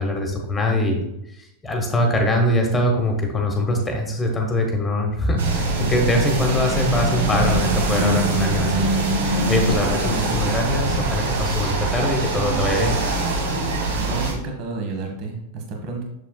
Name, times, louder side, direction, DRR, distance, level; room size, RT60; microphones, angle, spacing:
voice 1, 0.0-12.9, left 1 dB, 15° left, 2 dB, 1.3 m, -23 dB
sound 1, 5.4-14.3, right 2 dB, 60° right, 1.4 m, -23 dB
voice 2, 14.0-16.1, right 3 dB, 40° right, 2 dB, 1.3 m, -31 dB
7.2 x 6.8 x 2.2 m, 0.83 s
figure-of-eight pair, 90°, 0 cm